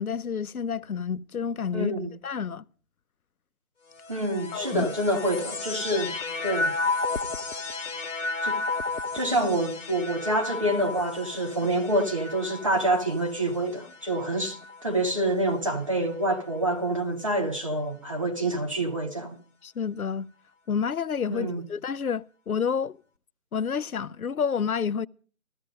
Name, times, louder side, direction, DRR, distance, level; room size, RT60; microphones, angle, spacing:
voice 1, 0.0-1.9 2.2-2.6 4.5-4.9 19.6-20.3 20.7-23.0 23.5-25.1, left 6 dB, 85° left, 0.6 m, -29 dB
voice 2, 1.7-2.1 4.1-6.1 6.4-6.8 8.4-8.6 9.1-19.4 21.3-21.6, right 1 dB, 25° right, 0.9 m, -27 dB
sound 1, 3.9-15.4 16.2-16.9, left 3 dB, 60° left, 1.1 m, -33 dB
14.5 x 14.5 x 5.2 m
figure-of-eight pair, 160°, 42 cm